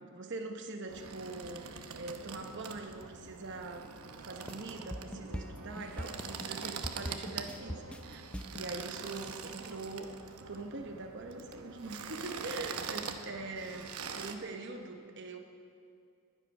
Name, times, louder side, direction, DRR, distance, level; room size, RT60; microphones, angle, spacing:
voice 1, 0.0-3.9 4.2-8.2 8.5-10.1 10.5-15.4, right 3 dB, 50° right, 3 dB, 0.9 m, -43 dB
sound 1, 0.9-14.3, right 6 dB, 85° right, 0.9 m, -44 dB
sound 2, 4.5-8.7, equal, 5° left, 0.5 m, -41 dB
21.0 x 8.2 x 5.4 m, 2.4 s
head